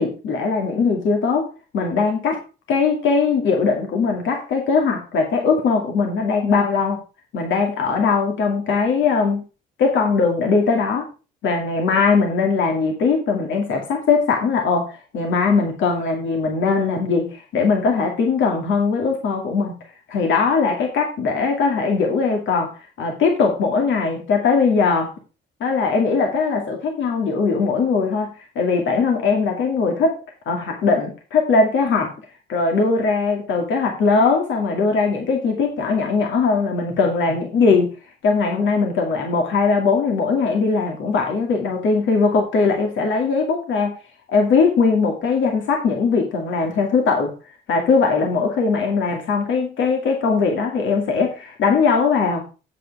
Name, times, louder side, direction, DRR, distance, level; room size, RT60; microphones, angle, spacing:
voice 1, 0.0-2.4 2.7-7.0 7.3-9.4 9.8-11.1 11.4-19.7 20.1-22.7 23.0-25.1 25.6-30.2 30.5-32.1 32.5-37.9 38.2-44.0 44.3-47.3 47.7-52.4, left 4 dB, 75° left, 2 dB, 2.3 m, -20 dB
8.4 x 7.8 x 4.8 m, 0.32 s
cardioid pair, 90°, 20 cm